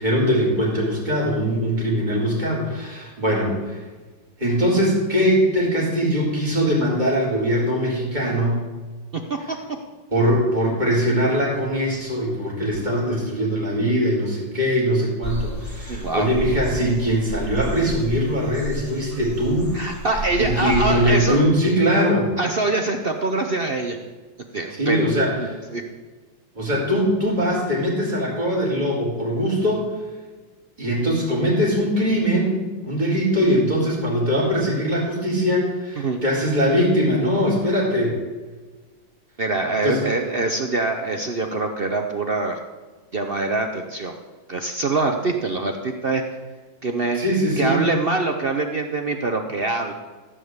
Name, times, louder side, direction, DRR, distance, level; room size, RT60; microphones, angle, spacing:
voice 1, 0.0-3.8 4.4-8.6 10.1-19.8 20.4-22.3 24.8-25.6 26.6-29.8 30.8-38.1 39.8-40.0 47.2-47.8, equal, 20° right, -5 dB, 4.2 m, -21 dB
sound 1, 15.2-21.4, right 1 dB, 10° left, 1.4 m, -32 dB
voice 2, 15.9-16.3 19.7-21.4 22.4-24.0 24.5-25.8 36.0-36.2 39.4-42.6 43.1-44.1 44.5-46.2 46.8-47.2 47.6-49.9, right 3 dB, 65° right, 4 dB, 0.5 m, -24 dB
14.5 x 5.5 x 8.0 m, 1.3 s
omnidirectional pair, 2.2 m